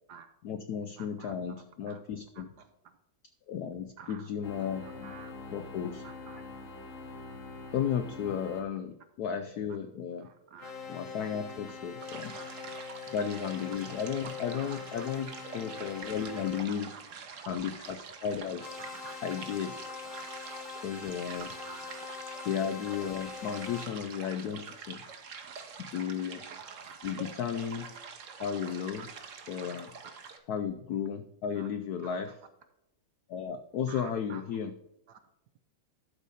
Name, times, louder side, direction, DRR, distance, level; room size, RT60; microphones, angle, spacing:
voice 1, 0.4-2.5 3.5-4.9 5.5-6.0 7.7-10.3 10.9-12.3 13.1-16.9 17.5-18.7 19.2-19.8 20.8-21.5 22.4-25.0 25.8-26.4 27.0-27.9 28.4-29.1 29.5-29.9 30.5-32.3 33.3-34.7, left 8 dB, 90° left, 9 dB, 0.8 m, -34 dB
voice 2, 1.0-1.3 1.9-2.0 2.3-3.0 4.0-4.3 4.6-5.3 6.0-6.4 10.2-10.7 12.1-12.8 14.5-14.8 16.2-16.3 16.7-17.4 18.8-19.2 20.0-20.3 21.6-22.1 23.0-23.1 23.5-23.8 25.1-25.2 25.4-25.5 26.5-27.0 29.0-29.1 31.5-31.7 32.0-32.3 33.9-34.4 35.1-35.2, right 7 dB, 70° right, 9 dB, 1.0 m, -50 dB
sound 1, 4.4-8.7 10.6-16.7 18.6-23.9, left 5 dB, 50° left, 1.2 m, -44 dB
sound 2, 4.8-7.6, left 9 dB, 65° left, 1.4 m, -56 dB
sound 3, 12.0-30.4, right 5 dB, 50° right, 1.0 m, -46 dB
12.0 x 4.1 x 4.9 m, 0.85 s
omnidirectional pair, 2.3 m